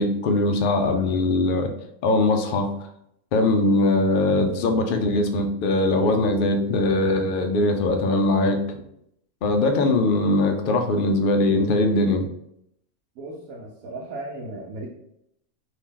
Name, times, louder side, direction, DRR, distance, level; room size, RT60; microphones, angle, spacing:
voice 1, 0.0-1.7 2.0-2.7 3.3-8.6 9.4-12.3, left 2 dB, 85° left, 5 dB, 0.4 m, -21 dB
voice 2, 13.2-14.9, right 2 dB, 80° right, -3 dB, 1.1 m, -36 dB
2.9 x 2.8 x 3.6 m, 0.75 s
omnidirectional pair, 1.5 m